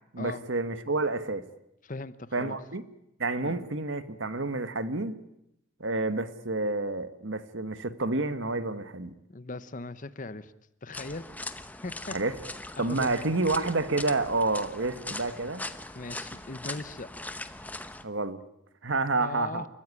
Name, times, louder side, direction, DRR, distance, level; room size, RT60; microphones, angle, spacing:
voice 1, 0.1-1.4 2.3-2.8 3.2-5.1 5.8-9.1 12.1-12.3 12.8-15.7 18.0-18.4 18.8-19.6, right 2 dB, 60° right, 12 dB, 1.4 m, -29 dB
voice 2, 1.8-2.6 3.5-3.6 9.3-10.5 10.8-11.3 11.8-12.2 12.8-13.2 14.9-15.0 15.9-17.1 19.1-19.7, left 2 dB, 40° left, 14 dB, 0.9 m, -39 dB
sound 1, 10.9-18.0, left 2 dB, 5° left, 0.8 m, -40 dB
29.5 x 14.5 x 9.7 m, 0.82 s
head